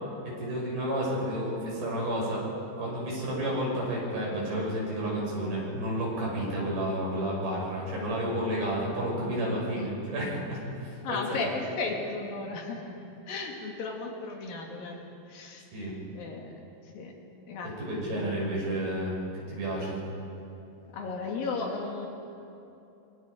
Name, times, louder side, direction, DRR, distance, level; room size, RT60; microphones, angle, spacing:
voice 1, 0.2-2.4 2.8-11.4 15.7-16.0 17.8-20.1, right 1 dB, 70° right, -4 dB, 7.9 m, -31 dB
voice 2, 9.5-9.9 11.0-13.0 13.3-15.0 15.3-15.7 16.1-16.5 16.8-17.1 17.5-17.7 18.1-18.6 20.9-22.1, left 3 dB, 65° left, 1 dB, 3.9 m, -35 dB
26.0 x 23.5 x 5.1 m, 2.9 s
omnidirectional pair, 4.4 m